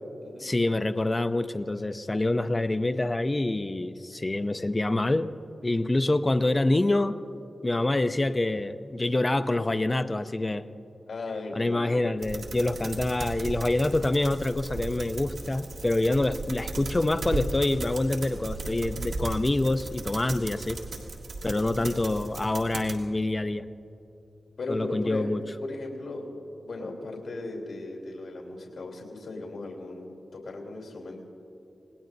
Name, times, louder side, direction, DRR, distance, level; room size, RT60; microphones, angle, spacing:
voice 1, 0.4-5.3 5.6-7.1 7.6-10.6 11.5-20.8 21.4-23.6 24.7-25.4, left 2 dB, 20° left, 9 dB, 0.5 m, -26 dB
voice 2, 11.1-12.0 21.5-21.9 22.4-22.6 24.6-25.3 25.6-26.3 26.6-31.2, left 2 dB, 80° left, 0 dB, 3.2 m, -37 dB
sound 1, 12.2-23.0, right 2 dB, 60° right, 1.8 m, -36 dB
27.0 x 19.5 x 2.6 m, 2.9 s
wide cardioid pair, 170°, 0 cm